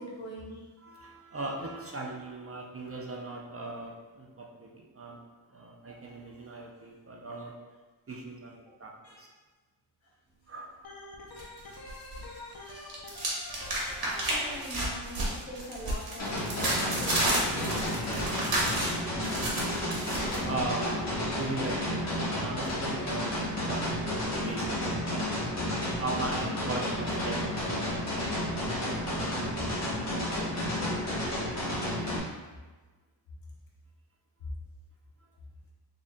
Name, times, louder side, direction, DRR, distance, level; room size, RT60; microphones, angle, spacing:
voice 1, 0.0-0.7 1.7-1.9 7.6-7.7 8.4-8.7 9.0-9.3 10.9-11.0 14.3-18.3 24.0-24.1 32.2-32.3 34.4-34.5, equal, 80° left, -4 dB, 1.1 m, -44 dB
voice 2, 0.8-5.2 5.5-7.5 8.1-8.9 9.2-9.3 10.5-10.7 20.4-22.0 22.4-25.2 26.0-28.7, right 2 dB, 30° right, -1 dB, 0.5 m, -38 dB
Organ, 10.8-14.6, left 2 dB, 50° left, 0.7 m, -46 dB
sound 1, 11.4-12.2 12.5-20.4, right 1 dB, 55° right, 1.1 m, -31 dB
sound 2, 16.2-32.2, left 1 dB, 35° left, 1.1 m, -31 dB
4.0 x 3.6 x 2.2 m, 1.3 s
wide cardioid pair, 105°, 46 cm